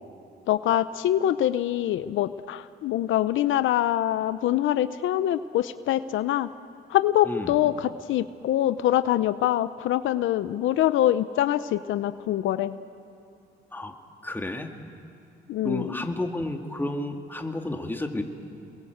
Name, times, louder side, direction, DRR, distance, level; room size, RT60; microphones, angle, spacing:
voice 1, 0.5-6.5 6.9-12.8 15.5-15.9, left 12 dB, 80° left, 13 dB, 0.7 m, -24 dB
voice 2, 14.2-14.7 15.6-18.2, left 1 dB, 10° left, 4 dB, 2.2 m, -31 dB
28.5 x 21.5 x 8.0 m, 2.4 s
cardioid pair, 90°, 20 cm